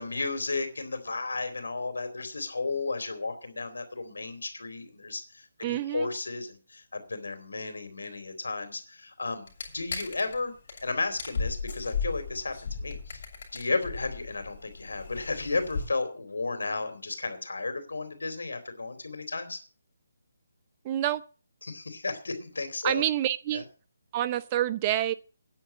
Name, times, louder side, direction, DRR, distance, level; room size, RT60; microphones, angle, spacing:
voice 1, 0.0-9.5 9.7-10.5 10.8-13.2 13.5-19.6 21.6-23.0 23.5-23.6, left 3 dB, 85° left, 8 dB, 3.7 m, -33 dB
voice 2, 5.6-6.1 20.8-21.2 22.8-23.6 24.1-25.1, right 12 dB, 25° right, 11 dB, 0.7 m, -27 dB
sound 1, 9.5-10.4 10.7-10.8 11.1-15.9, left 5 dB, 50° left, 6.7 m, -36 dB
9.9 x 8.0 x 8.5 m, 0.38 s
hypercardioid pair, 160°, 0 cm